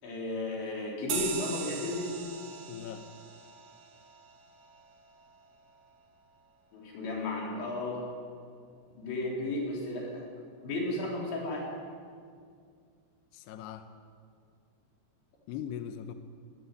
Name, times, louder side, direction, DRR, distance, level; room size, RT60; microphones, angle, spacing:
voice 1, 0.0-2.1 6.7-8.0 9.0-10.2 10.6-11.6, left 2 dB, 60° left, -2 dB, 6.5 m, -34 dB
sound 1, 1.1-6.0, right 6 dB, 60° right, 2.5 m, -41 dB
voice 2, 2.7-3.1 13.3-13.9 15.5-16.1, left 9 dB, 80° left, 8 dB, 2.5 m, -40 dB
20.0 x 18.0 x 8.5 m, 2.2 s
omnidirectional pair, 5.8 m